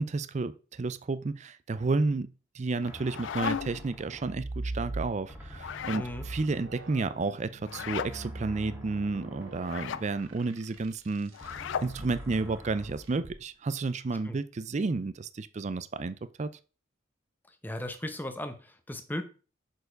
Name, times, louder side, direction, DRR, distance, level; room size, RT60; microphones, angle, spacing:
voice 1, 0.0-2.3 2.5-11.6 11.8-16.5, right 3 dB, 35° right, 14 dB, 0.4 m, -31 dB
sound 1, 2.7-5.0 5.3-7.1 7.6-10.9 11.4-13.3, equal, 10° right, 1.8 m, -48 dB
sound 2, 2.8-3.9 5.5-6.1 7.6-8.1 9.6-10.1 11.3-11.9, left 8 dB, 65° left, 0.3 m, -35 dB
sound 3, 4.1-5.5 6.0-11.5 13.0-13.4, right 2 dB, 90° right, 1.2 m, -41 dB
voice 2, 5.9-6.3 14.2-14.4 17.6-19.2, left 1 dB, 10° left, 7 dB, 0.9 m, -36 dB
6.5 x 4.7 x 5.2 m, 0.35 s
head